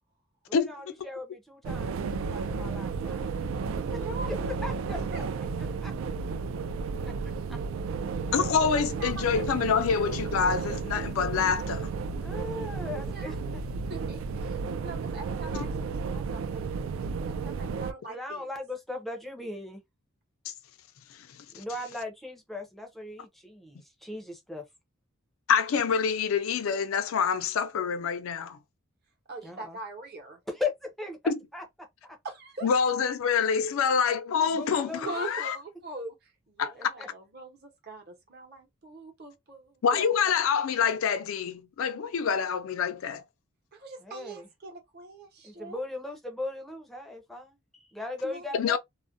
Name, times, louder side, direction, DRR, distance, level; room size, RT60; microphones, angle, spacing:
voice 1, 0.5-3.3 3.9-5.2 5.8-5.9 7.5-7.6 12.2-13.6 18.1-19.8 21.5-24.7 29.4-29.8 30.5-32.2 34.4-35.1 36.8-37.1 44.0-44.5 45.4-48.8, left 2 dB, ahead, 0.5 m, -38 dB
sound 1, 1.6-17.9, right 4 dB, 65° right, 0.3 m, -33 dB
voice 2, 4.0-4.5 5.1-5.3 8.7-9.8 10.1-10.2 13.0-13.4 13.9-16.6 17.1-18.4 29.3-30.4 32.2-32.7 35.0-40.2 43.7-45.8 48.2-48.5, right 3 dB, 50° right, 0.9 m, -42 dB
voice 3, 8.3-11.9 25.5-28.6 31.3-31.4 32.6-35.6 36.6-36.9 39.8-43.2 48.5-48.8, left 6 dB, 70° left, 0.4 m, -26 dB
2.4 x 2.1 x 2.5 m
head